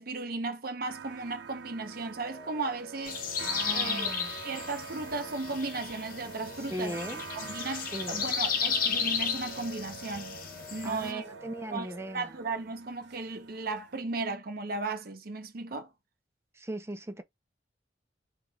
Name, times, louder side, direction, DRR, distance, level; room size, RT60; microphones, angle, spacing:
voice 1, 0.0-3.2 3.7-4.2 4.4-7.0 7.3-10.4 10.7-11.3 11.7-11.9 12.1-15.9, right 3 dB, 55° right, 0.8 m, -35 dB
sound 1, 0.9-14.0, right 6 dB, 75° right, 0.5 m, -47 dB
sound 2, 2.1-12.3, right 2 dB, 80° left, 1.0 m, -47 dB
sound 3, 3.0-11.1, left 6 dB, 55° left, 0.7 m, -34 dB
voice 2, 3.4-4.3 6.7-7.2 7.9-8.3 10.8-12.3 16.6-17.2, equal, 15° right, 0.5 m, -38 dB
3.2 x 3.0 x 3.5 m
head